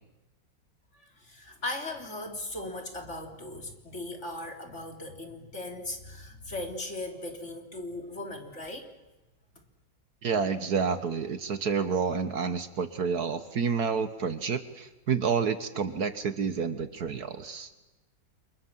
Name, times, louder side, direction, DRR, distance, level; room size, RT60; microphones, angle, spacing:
voice 1, 0.9-8.9, left 2 dB, 40° left, 3 dB, 3.7 m, -38 dB
voice 2, 10.2-17.7, right 5 dB, 60° right, 10 dB, 1.8 m, -29 dB
28.5 x 27.0 x 7.4 m, 1.1 s
omnidirectional pair, 2.0 m